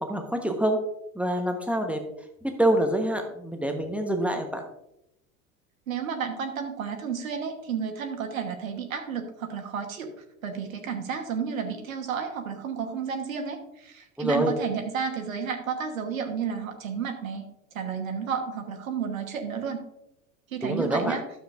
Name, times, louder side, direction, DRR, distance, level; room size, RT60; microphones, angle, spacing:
voice 1, 0.0-0.8 1.1-2.0 2.6-4.6 14.2-14.5 20.6-21.1, right 1 dB, 5° right, 5 dB, 1.0 m, -26 dB
voice 2, 5.9-10.1 10.4-17.4 17.7-19.8 20.5-21.2, right 6 dB, 70° right, 5 dB, 1.2 m, -32 dB
12.5 x 7.2 x 2.4 m, 0.83 s
figure-of-eight pair, 75°, 42 cm